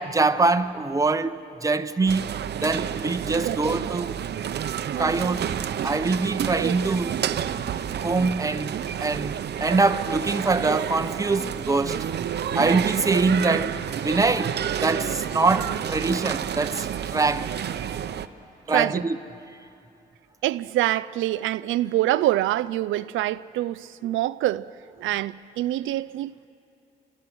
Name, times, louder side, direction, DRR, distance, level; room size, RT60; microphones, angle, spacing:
voice 1, 0.0-2.3 2.6-4.1 5.0-5.5 5.8-7.2 8.0-12.1 12.5-13.8 14.0-17.5 18.7-19.2, right 3 dB, 15° right, 0.9 m, -24 dB
sound 1, 2.1-18.3, right 9 dB, 55° right, 0.8 m, -29 dB
voice 2, 3.4-3.9 6.6-6.7 18.7-19.0 20.4-24.7 25.0-26.5, right 15 dB, 85° right, 0.5 m, -25 dB
29.0 x 23.0 x 6.2 m
cardioid pair, 90°, 20 cm